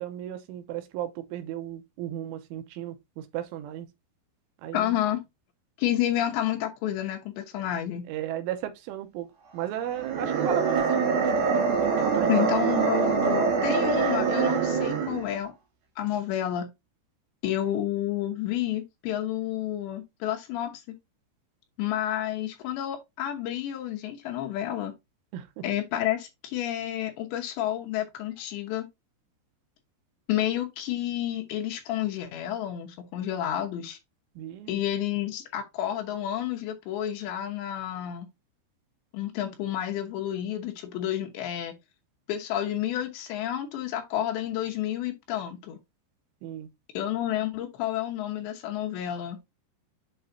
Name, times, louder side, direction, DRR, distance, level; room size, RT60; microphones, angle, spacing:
voice 1, 0.0-3.9 4.6-4.9 8.1-9.3 9.5-11.3 12.1-12.5 25.3-25.6 34.4-34.8 46.4-46.7, right 11 dB, 85° right, 3.3 m, -35 dB
voice 2, 4.7-5.2 5.8-8.1 12.3-15.5 16.0-16.7 17.4-20.7 21.8-24.9 25.6-28.9 30.3-34.0 34.7-38.3 39.1-41.8 42.3-45.8 46.9-49.4, left 12 dB, 75° left, 3.0 m, -30 dB
sound 1, 10.0-15.3, right 5 dB, 65° right, 4.5 m, -24 dB
7.9 x 5.5 x 2.7 m
omnidirectional pair, 5.7 m